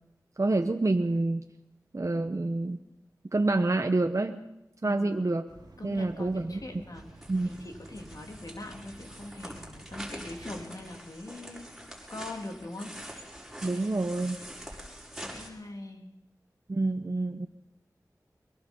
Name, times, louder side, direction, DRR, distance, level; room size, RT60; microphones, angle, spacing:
voice 1, 0.4-1.4 1.9-2.8 3.3-4.4 4.8-5.4 5.8-6.6 7.3-7.5 13.6-14.4 16.7-17.5, right 2 dB, 50° right, 5 dB, 1.1 m, -27 dB
voice 2, 4.8-5.3 5.8-7.1 7.6-13.0 15.2-16.2, left 2 dB, 65° left, 3 dB, 3.4 m, -42 dB
sound 1, 5.5-10.6, right 2 dB, 75° right, 2.3 m, -51 dB
sound 2, 6.9-15.5, equal, 5° right, 6.1 m, -45 dB
22.5 x 22.5 x 5.5 m, 0.90 s
wide cardioid pair, 55°, 7 cm